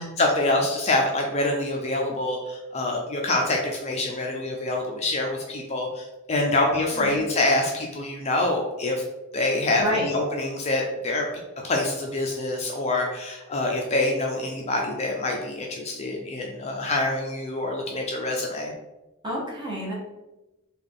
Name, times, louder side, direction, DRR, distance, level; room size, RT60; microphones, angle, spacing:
voice 1, 0.0-9.0 9.3-11.3 11.6-18.7, left 2 dB, 30° left, 0 dB, 0.4 m, -26 dB
voice 2, 9.8-10.1 19.2-19.9, left 1 dB, 20° right, -3 dB, 0.9 m, -29 dB
3.4 x 2.3 x 3.7 m, 1.0 s
head